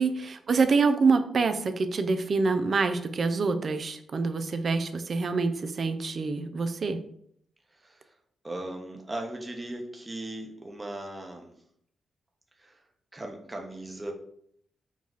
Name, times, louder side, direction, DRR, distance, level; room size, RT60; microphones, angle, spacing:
voice 1, 0.0-7.0, right 4 dB, 55° right, 9 dB, 0.5 m, -26 dB
voice 2, 7.7-8.2 8.4-11.6 12.6-12.8 13.1-14.1, right 1 dB, 20° right, 1 dB, 0.9 m, -38 dB
4.6 x 2.4 x 4.1 m, 0.69 s
supercardioid pair, 55°, 0 cm